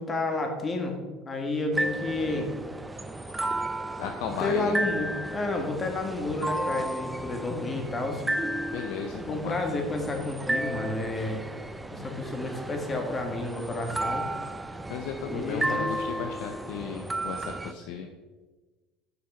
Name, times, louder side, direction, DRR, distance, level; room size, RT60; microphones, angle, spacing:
voice 1, 0.0-2.5 4.3-8.2 9.3-11.4 11.9-14.2 15.3-15.8, left 2 dB, 30° left, 3 dB, 1.5 m, -31 dB
sound 1, 1.7-17.7, right 1 dB, 10° right, 0.5 m, -33 dB
voice 2, 4.0-4.9 8.7-9.5 14.9-18.1, left 6 dB, 70° left, 4 dB, 0.6 m, -35 dB
6.2 x 5.9 x 4.3 m, 1.2 s
hypercardioid pair, 75°, 0 cm